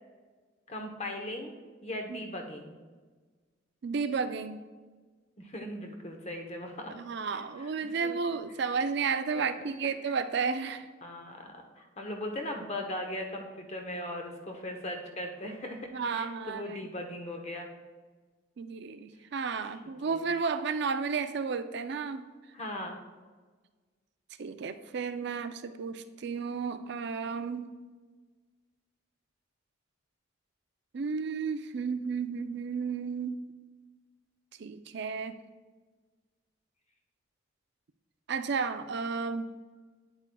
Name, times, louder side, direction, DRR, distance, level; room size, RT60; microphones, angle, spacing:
voice 1, 0.7-1.5 1.8-2.8 5.4-6.9 7.2-8.1 9.6-9.7 11.0-17.7 19.6-19.7 20.1-20.2 22.5-23.0, left 1 dB, 35° left, 3 dB, 0.9 m, -39 dB
voice 2, 3.8-4.6 6.9-10.9 15.9-16.9 18.6-22.3 24.4-27.7 30.9-33.4 34.6-35.4 38.3-39.5, right 5 dB, 60° right, 10 dB, 0.4 m, -32 dB
9.5 x 8.1 x 2.3 m, 1.4 s
head